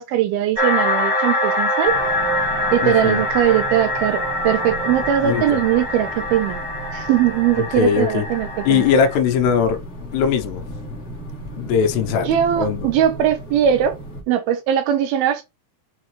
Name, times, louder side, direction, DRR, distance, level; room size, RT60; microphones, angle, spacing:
voice 1, 0.0-1.9 2.7-6.6 6.9-8.9 12.3-14.0 14.3-15.4, right 10 dB, 80° right, 2.3 m, -20 dB
sound 1, 0.6-9.2, left 1 dB, 20° right, 2.3 m, -24 dB
sound 2, 1.9-14.2, right 1 dB, 25° left, 2.4 m, -35 dB
voice 2, 2.8-3.2 5.2-5.6 7.6-8.3 8.7-9.8 10.1-10.6 11.6-12.9, left 7 dB, 80° left, 3.0 m, -20 dB
6.7 x 4.7 x 3.3 m
omnidirectional pair, 4.8 m